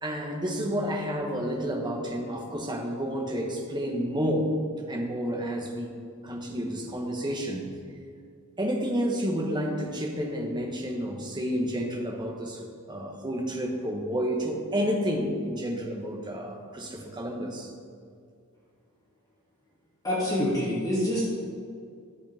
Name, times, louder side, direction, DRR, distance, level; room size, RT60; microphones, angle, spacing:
voice 1, 0.0-4.6 4.9-6.0 6.2-7.7 8.6-17.7, equal, 20° right, 1 dB, 1.2 m, -30 dB
voice 2, 20.0-21.5, left 1 dB, 15° left, -8 dB, 2.4 m, -26 dB
13.5 x 8.2 x 3.5 m, 2.3 s
head